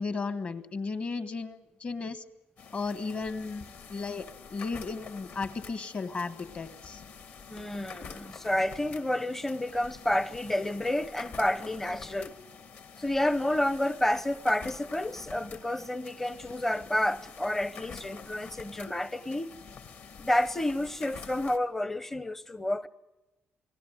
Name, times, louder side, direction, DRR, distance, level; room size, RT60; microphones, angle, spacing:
voice 1, 0.0-2.2 2.7-7.0, left 4 dB, 30° left, 1.4 m, -35 dB
sound 1, 2.6-21.6, left 6 dB, 50° left, 2.1 m, -47 dB
voice 2, 7.5-12.4 13.0-19.5 20.2-22.9, left 1 dB, 10° left, 0.8 m, -30 dB
28.5 x 19.5 x 7.8 m
cardioid pair, 175°, 4 cm